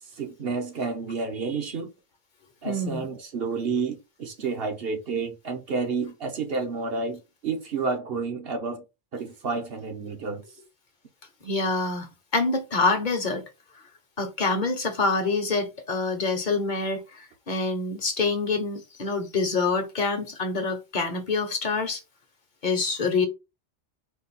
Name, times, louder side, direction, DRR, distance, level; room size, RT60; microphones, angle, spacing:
voice 1, 0.2-1.9 2.6-8.8 9.1-10.4, right 4 dB, 55° right, 1.1 m, -30 dB
voice 2, 2.6-3.0 11.4-13.4 14.2-22.0 22.6-23.3, left 3 dB, 45° left, 0.9 m, -26 dB
4.6 x 2.5 x 4.1 m
omnidirectional pair, 1.2 m